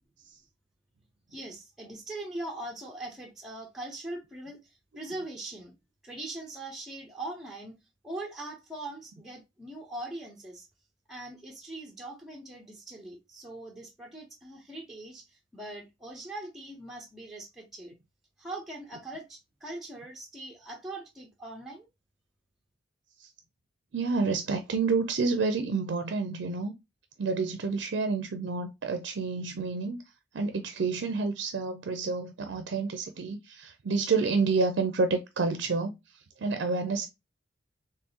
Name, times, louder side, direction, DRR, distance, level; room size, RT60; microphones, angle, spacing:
voice 1, 1.3-4.6 5.0-5.7 6.0-7.8 8.0-10.7 11.1-17.9 18.4-21.9, right 2 dB, ahead, 0.7 m, -41 dB
voice 2, 23.9-26.7 27.2-30.0 30.3-35.9 36.4-37.1, right 4 dB, 65° right, 0.4 m, -29 dB
4.5 x 3.0 x 2.8 m
head